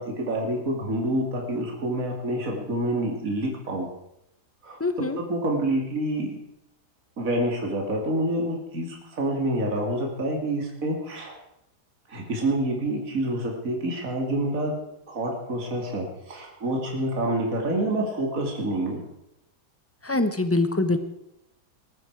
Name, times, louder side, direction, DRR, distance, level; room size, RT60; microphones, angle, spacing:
voice 1, 0.0-3.9 4.6-4.8 5.2-6.3 7.2-11.3 12.1-14.7 15.1-19.0, right 1 dB, 55° right, 0 dB, 3.0 m, -27 dB
voice 2, 4.8-5.2 20.0-21.0, left 2 dB, 10° left, 9 dB, 0.8 m, -24 dB
20.0 x 13.0 x 4.8 m, 0.84 s
omnidirectional pair, 1.7 m